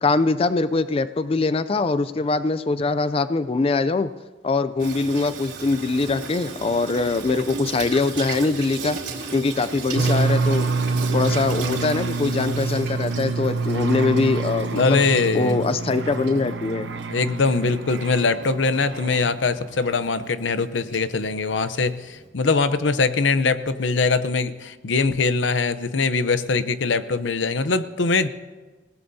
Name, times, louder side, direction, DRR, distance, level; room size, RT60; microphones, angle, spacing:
voice 1, 0.0-4.1 4.4-9.0 9.3-10.7 11.1-15.0 15.3-16.9, left 3 dB, 30° left, 13 dB, 0.4 m, -22 dB
Water tap faucet / Sink (filling or washing), 4.8-22.3, right 4 dB, 90° right, 2.8 m, -37 dB
sound 1, 9.9-19.5, right 3 dB, 70° right, 0.7 m, -26 dB
voice 2, 14.7-15.6 17.1-28.3, left 4 dB, 85° left, 12 dB, 0.7 m, -22 dB
27.5 x 17.5 x 2.7 m, 1.3 s
head